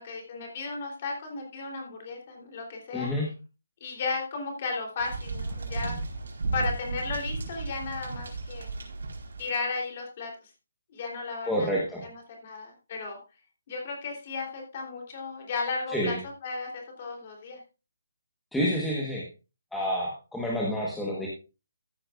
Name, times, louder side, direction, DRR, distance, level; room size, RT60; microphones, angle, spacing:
voice 1, 0.0-3.1 3.8-6.0 6.5-8.7 9.4-10.3 10.9-13.2 13.7-17.6, left 4 dB, 25° left, 1 dB, 3.4 m, -35 dB
voice 2, 2.9-3.3 11.5-12.0 15.9-16.2 18.5-19.2 19.7-21.3, equal, ahead, -5 dB, 1.3 m, -28 dB
sound 1, 5.0-9.5, right 3 dB, 65° right, 4.4 m, -34 dB
14.5 x 9.8 x 2.5 m, 0.30 s
hypercardioid pair, 175°, 0 cm